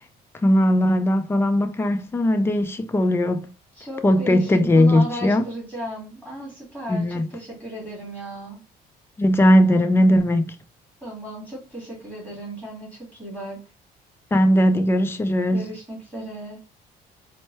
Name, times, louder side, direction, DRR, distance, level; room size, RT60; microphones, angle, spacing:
voice 1, 0.4-3.5 4.0-5.4 6.9-7.3 9.2-10.6 14.3-15.7, left 1 dB, 15° left, 0.5 m, -19 dB
voice 2, 3.7-8.6 9.7-9.8 11.0-13.7 15.5-16.6, right 1 dB, 5° right, 2.0 m, -35 dB
4.4 x 2.1 x 3.2 m
cardioid pair, 110°, 17 cm